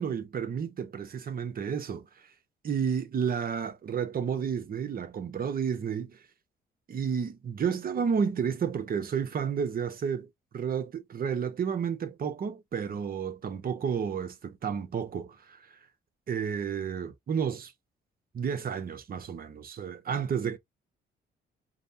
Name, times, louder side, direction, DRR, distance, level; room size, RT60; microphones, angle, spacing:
voice 1, 0.0-2.1 2.6-6.2 6.9-10.3 10.5-15.8 16.3-17.7 18.3-20.6, right 7 dB, 50° right, 0.9 m, -31 dB
5.2 x 2.1 x 2.7 m
cardioid pair, 90°, 20 cm